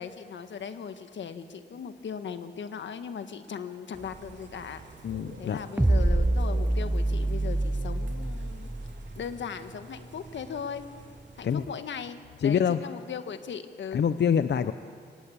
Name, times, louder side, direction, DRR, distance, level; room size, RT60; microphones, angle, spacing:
voice 1, 0.0-4.8 5.4-8.7 9.2-10.8 11.4-14.0, left 7 dB, 90° left, 9 dB, 1.4 m, -38 dB
Bird / Rain, 3.9-12.1, right 3 dB, 75° right, 3.5 m, -48 dB
voice 2, 5.0-5.6 11.4-11.6 12.4-12.8 13.9-14.7, left 8 dB, 65° left, 11 dB, 0.7 m, -25 dB
sound 1, 5.8-9.2, right 1 dB, 10° right, 0.6 m, -26 dB
24.0 x 21.5 x 8.5 m, 2.2 s
wide cardioid pair, 105°, 19 cm